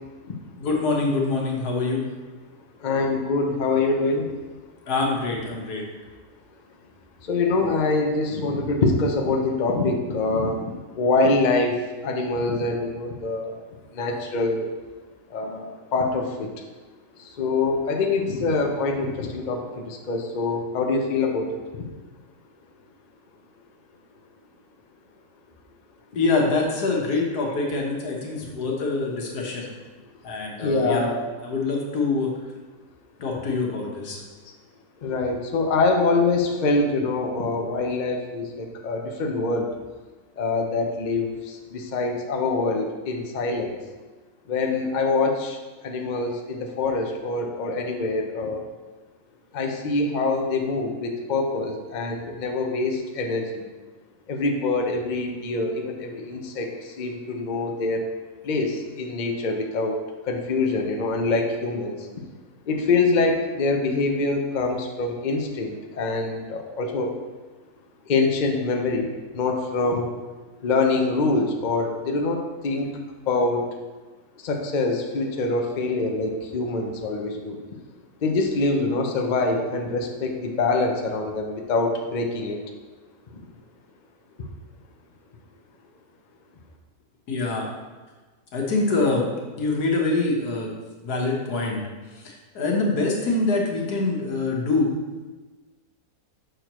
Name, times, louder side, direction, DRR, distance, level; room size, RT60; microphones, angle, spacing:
voice 1, 0.6-2.0 4.9-5.8 26.2-29.7 30.2-31.0 31.4-32.3 33.2-34.2 87.3-87.7 88.5-89.3 89.6-90.7 91.0-91.8 92.2-94.9, left 3 dB, 90° left, -1 dB, 1.7 m, -25 dB
voice 2, 2.8-4.3 7.2-13.6 13.9-14.7 15.3-16.5 17.2-21.9 30.6-31.2 35.0-39.7 40.4-43.8 44.5-45.6 45.8-48.7 49.5-53.7 54.3-58.0 58.4-60.0 60.2-62.1 62.7-67.1 68.1-70.1 70.6-72.9 73.3-73.6 74.4-77.6 78.2-82.6 83.3-83.4, left 3 dB, 45° left, 2 dB, 0.6 m, -25 dB
6.4 x 6.3 x 3.0 m, 1.3 s
omnidirectional pair, 1.6 m